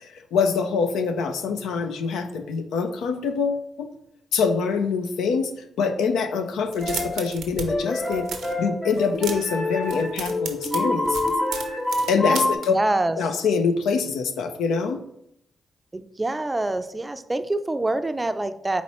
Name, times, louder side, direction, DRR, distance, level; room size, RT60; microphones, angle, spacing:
voice 1, 0.0-3.9 4.3-5.5 5.8-8.3 8.6-11.3 12.1-12.7 13.2-15.0, left 5 dB, 80° left, 7 dB, 0.4 m, -25 dB
sound 1, 6.7-7.7 7.9-8.6 8.9-9.6 9.8-12.7, right 6 dB, 80° right, 0.7 m, -34 dB
sound 2, 6.8-7.2 7.7-12.6, left 2 dB, 30° left, 0.9 m, -27 dB
voice 2, 12.7-13.2 15.9-18.8, right 2 dB, 25° right, 10 dB, 0.4 m, -25 dB
4.3 x 4.1 x 3.0 m, 0.77 s
supercardioid pair, 45°, 0 cm